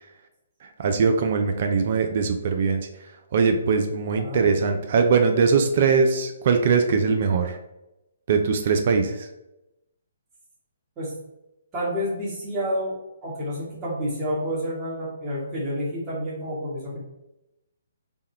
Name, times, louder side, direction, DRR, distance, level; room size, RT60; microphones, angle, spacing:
voice 1, 0.6-2.9 3.3-7.6 8.3-9.3, right 5 dB, 55° right, 6 dB, 0.4 m, -21 dB
voice 2, 4.2-4.5 11.0-11.1 11.7-13.0 13.2-17.0, equal, 20° right, -7 dB, 1.2 m, -29 dB
3.5 x 2.2 x 4.2 m, 0.93 s
hypercardioid pair, 140°, 0 cm